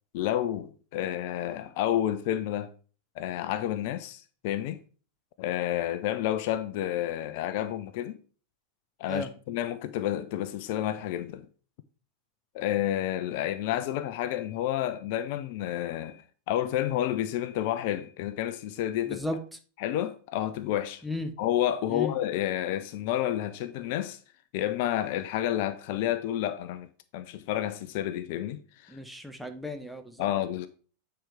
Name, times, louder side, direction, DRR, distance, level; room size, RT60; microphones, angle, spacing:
voice 1, 0.1-2.7 3.2-4.8 5.4-8.2 9.0-11.5 12.5-19.2 19.8-21.0 21.4-24.2 24.5-26.9 27.1-29.0 30.2-30.7, left 12 dB, 50° left, 0.5 m, -30 dB
voice 2, 19.1-19.4 21.0-21.3 21.9-22.1 28.9-30.3, left 2 dB, ahead, 0.8 m, -35 dB
8.9 x 4.6 x 3.5 m
figure-of-eight pair, 90°, 0 cm